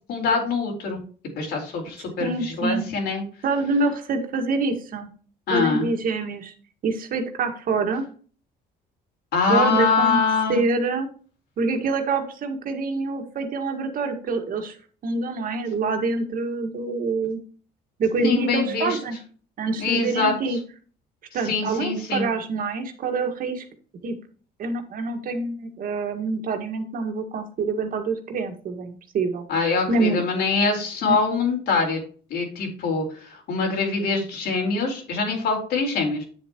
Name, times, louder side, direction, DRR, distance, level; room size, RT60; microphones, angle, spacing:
voice 1, 0.1-1.0 1.4-3.2 5.5-5.9 9.3-10.6 18.2-19.0 19.8-20.3 21.4-22.2 29.5-32.0 32.3-36.2, left 4 dB, 70° left, 1 dB, 4.3 m, -24 dB
voice 2, 2.2-2.9 3.4-5.1 5.5-6.5 6.8-8.1 9.5-10.2 10.5-11.1 11.6-14.8 15.0-17.4 18.0-19.2 19.6-20.6 21.3-23.7 24.0-24.2 24.6-29.4 29.9-30.2 31.1-31.2, right 3 dB, 55° right, 5 dB, 1.9 m, -26 dB
9.8 x 7.3 x 3.0 m, 0.41 s
cardioid pair, 110°, 17 cm